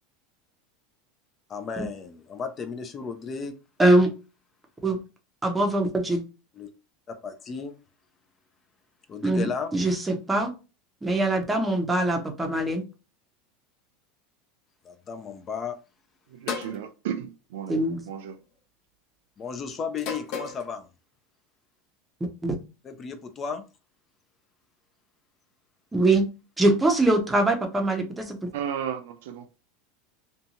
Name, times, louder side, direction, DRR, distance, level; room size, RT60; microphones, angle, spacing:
voice 1, 1.5-3.6 6.5-6.7 7.1-7.8 9.1-9.7 14.8-15.8 19.4-20.9 22.8-23.6, left 5 dB, 30° left, 0.4 m, -34 dB
voice 2, 3.8-4.1 4.8-5.0 5.4-6.2 9.2-10.5 11.0-12.8 17.7-18.0 22.4-22.5 25.9-26.3 26.6-28.4, right 2 dB, 10° right, 0.6 m, -22 dB
voice 3, 16.3-17.8 18.0-18.4 28.5-29.5, right 9 dB, 80° right, 0.5 m, -34 dB
sound 1, 16.5-16.8 18.0-18.3 20.0-20.6, left 5 dB, 55° left, 0.7 m, -33 dB
2.6 x 2.2 x 2.8 m
supercardioid pair, 135°, 0 cm